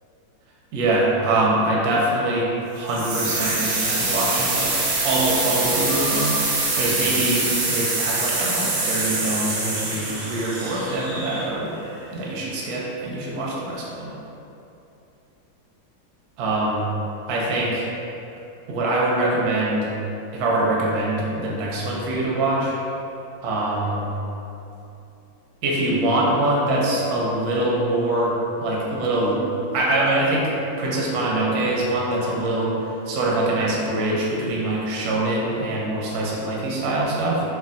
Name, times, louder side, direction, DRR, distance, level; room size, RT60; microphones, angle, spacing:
voice 1, 0.7-2.5 2.7-4.8 5.0-11.7 12.1-14.1 16.4-16.9 17.3-17.9 18.7-19.9 20.3-22.8 23.4-24.1 25.6-28.3 28.6-29.4 29.7-32.7 33.1-37.4, right 1 dB, 70° right, -4 dB, 0.9 m, -23 dB
sound 1, 2.9-11.8, right 3 dB, 90° right, 1.3 m, -24 dB
3.3 x 2.1 x 2.5 m, 2.8 s
omnidirectional pair, 2.0 m